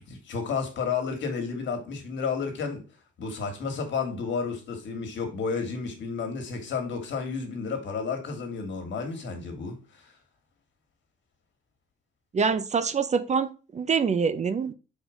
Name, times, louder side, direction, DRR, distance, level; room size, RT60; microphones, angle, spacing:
voice 1, 0.1-2.9 3.2-10.1, left 5 dB, 70° left, 1.9 m, -31 dB
voice 2, 12.3-14.7, right 5 dB, 35° right, 0.6 m, -25 dB
5.0 x 4.1 x 5.0 m
cardioid pair, 90°, 20 cm